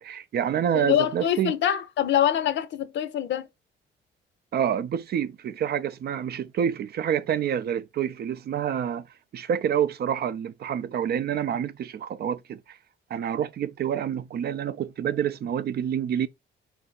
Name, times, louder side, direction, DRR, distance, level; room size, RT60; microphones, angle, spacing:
voice 1, 0.0-1.6 4.5-9.1 9.3-12.8 13.1-16.3, right 9 dB, 55° right, 0.4 m, -27 dB
voice 2, 0.7-3.5, left 10 dB, 65° left, 0.6 m, -24 dB
4.3 x 2.6 x 3.9 m
cardioid pair, 90°, 20 cm